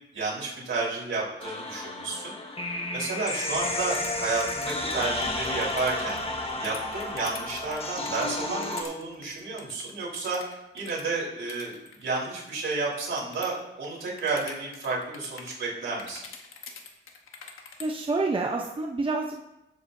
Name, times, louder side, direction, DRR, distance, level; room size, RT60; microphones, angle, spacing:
voice 1, 0.1-2.3 2.9-6.2 6.6-10.4 10.7-16.2, right 3 dB, 70° right, -5 dB, 4.2 m, -31 dB
sound 1, 1.4-8.8, left 2 dB, 30° left, 1.3 m, -32 dB
sound 2, 3.5-9.6, right 1 dB, ahead, 3.8 m, -50 dB
sound 3, 3.8-13.6 13.8-15.6 16.0-17.8, left 5 dB, 90° left, 1.3 m, -45 dB
voice 2, 17.8-19.4, right 3 dB, 25° right, 1 dB, 0.8 m, -28 dB
14.5 x 8.0 x 2.8 m, 0.89 s
wide cardioid pair, 105°, 21 cm